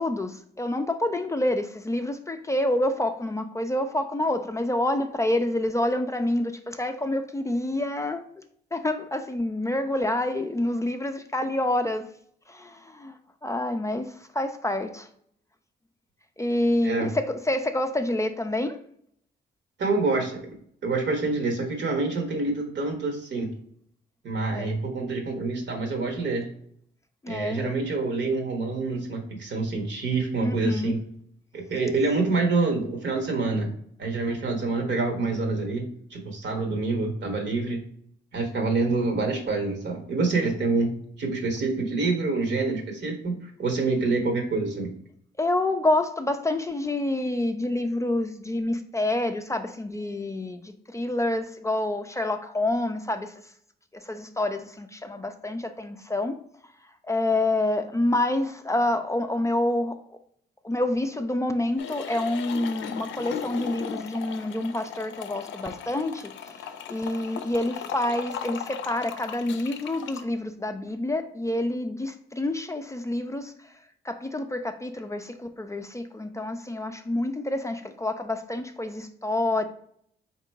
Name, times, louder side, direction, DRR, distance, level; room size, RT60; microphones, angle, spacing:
voice 1, 0.0-8.2 8.7-12.1 12.5-15.1 16.4-18.8 24.5-24.8 27.2-27.8 30.4-31.0 45.4-53.3 53.9-56.4 57.1-60.2 60.6-73.7 74.0-79.6, left 1 dB, 15° left, 6 dB, 0.4 m, -28 dB
voice 2, 19.8-20.5 20.8-23.5 24.2-26.5 27.3-31.0 31.5-33.7 34.0-35.8 36.1-37.8 38.3-44.9, right 3 dB, 70° right, 2 dB, 1.2 m, -27 dB
sound 1, 61.8-70.2, left 8 dB, 85° left, 0.4 m, -37 dB
3.7 x 2.9 x 4.4 m, 0.66 s
cardioid pair, 75°, 19 cm